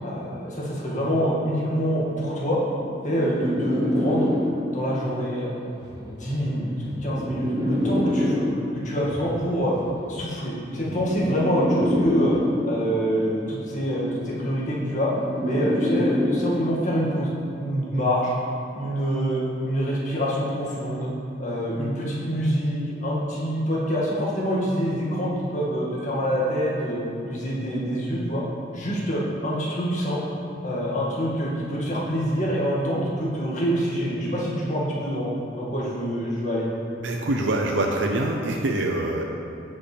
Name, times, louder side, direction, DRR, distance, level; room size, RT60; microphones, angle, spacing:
voice 1, 0.0-2.6 3.0-4.3 4.7-5.6 6.0-6.7 7.0-8.4 8.7-9.7 10.1-12.3 12.6-15.1 15.4-17.3 17.5-18.3 18.7-21.1 21.4-27.0 27.2-28.4 28.7-30.2 30.6-35.3 35.6-36.7, equal, 40° left, -6 dB, 1.9 m, -26 dB
sound 1, 2.6-5.0 6.0-9.0 10.0-13.0 14.0-17.0, left 1 dB, 20° right, 0.7 m, -27 dB
sound 2, 5.7-6.1 6.8-7.1 7.7-8.1 8.9-9.3 9.6-10.1 10.7-11.1 11.7-12.1, equal, 70° right, 1.3 m, -43 dB
voice 2, 37.0-39.2, right 2 dB, 85° right, 1 dB, 0.7 m, -24 dB
16.0 x 5.5 x 3.3 m, 2.6 s
head